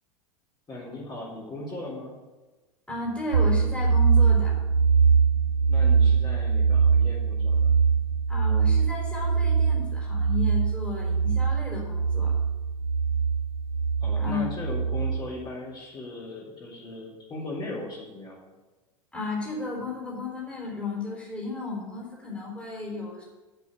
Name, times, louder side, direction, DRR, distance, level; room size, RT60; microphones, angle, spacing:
voice 1, 0.7-2.2 5.7-7.7 14.0-18.5, left 2 dB, 25° left, -6 dB, 3.8 m, -38 dB
voice 2, 2.9-4.6 8.3-12.3 14.2-14.5 19.1-23.2, left 3 dB, 5° left, -4 dB, 4.0 m, -33 dB
sound 1, 3.3-15.2, right 5 dB, 85° right, 0.9 m, -23 dB
7.8 x 7.6 x 7.3 m, 1.2 s
hypercardioid pair, 90°, 18 cm